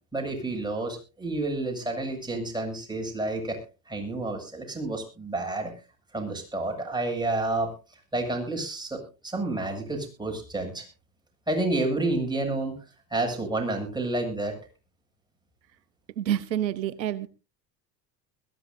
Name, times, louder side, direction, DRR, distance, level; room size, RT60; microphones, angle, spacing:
voice 1, 0.1-3.6 3.9-5.7 6.1-7.7 8.1-10.9 11.5-14.6, right 2 dB, 10° right, 1 dB, 7.2 m, -30 dB
voice 2, 16.2-17.3, right 11 dB, 90° right, 15 dB, 0.8 m, -28 dB
22.0 x 14.0 x 2.6 m, 0.32 s
hypercardioid pair, 70°, 49 cm